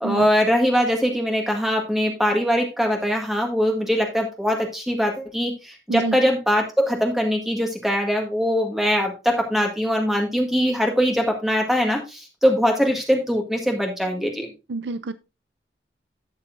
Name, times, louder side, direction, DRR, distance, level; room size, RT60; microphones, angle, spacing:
voice 1, 0.0-14.5, equal, ahead, 1.7 m, -22 dB
voice 2, 14.7-15.1, right 3 dB, 65° right, 0.5 m, -27 dB
12.0 x 7.0 x 2.6 m
head